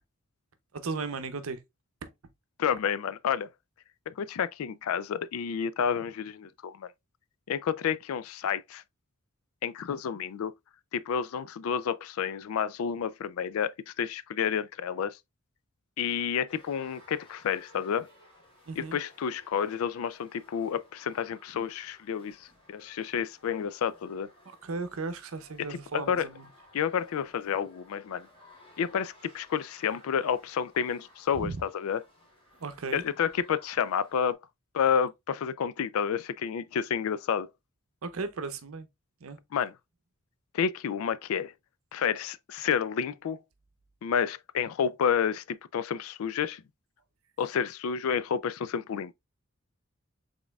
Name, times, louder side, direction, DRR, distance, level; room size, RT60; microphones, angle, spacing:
voice 1, 0.7-1.6 2.0-2.1 18.7-19.0 24.5-26.4 31.4-31.6 32.6-33.0 38.0-38.9 39.2-39.4, right 4 dB, 85° right, 0.7 m, -36 dB
voice 2, 2.6-3.5 4.1-6.9 7.5-8.8 9.6-10.5 10.9-15.2 16.0-18.1 18.8-24.3 25.7-26.2 26.7-28.3 28.8-32.0 32.9-34.4 34.7-37.5 39.5-39.7 40.5-41.5 41.9-43.4 44.0-46.6 47.4-49.1, left 7 dB, 90° left, 0.4 m, -30 dB
sound 1, 16.5-34.3, left 1 dB, 25° left, 2.2 m, -58 dB
5.1 x 3.7 x 2.2 m
head